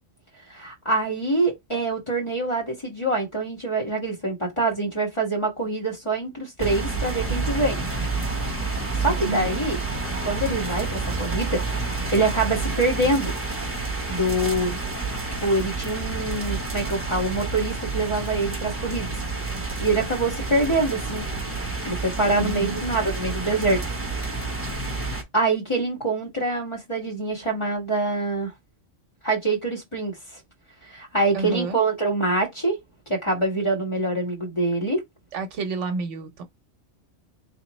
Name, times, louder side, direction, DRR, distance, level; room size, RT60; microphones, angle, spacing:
voice 1, 0.5-7.8 9.0-9.8 10.2-13.3 14.1-14.8 15.4-19.1 19.5-21.2 21.8-24.4 25.3-28.5 29.2-30.1 30.9-32.7 33.1-35.0, right 2 dB, 25° left, 1.6 m, -25 dB
sound 1, 6.6-25.2, right 3 dB, 10° right, 0.8 m, -29 dB
voice 2, 9.2-9.6 22.4-22.8 31.3-31.8 35.3-36.4, right 4 dB, 70° right, 1.0 m, -30 dB
3.9 x 2.9 x 3.0 m
omnidirectional pair, 1.3 m